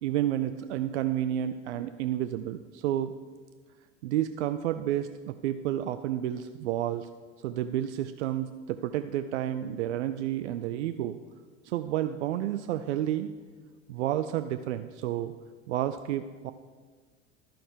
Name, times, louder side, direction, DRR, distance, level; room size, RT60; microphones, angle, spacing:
voice 1, 0.0-3.1 4.0-7.1 7.4-11.2 11.6-13.3 13.9-15.3 15.7-16.5, right 12 dB, 70° right, 10 dB, 0.5 m, -30 dB
12.0 x 5.9 x 5.0 m, 1.5 s
figure-of-eight pair, 70°, 36 cm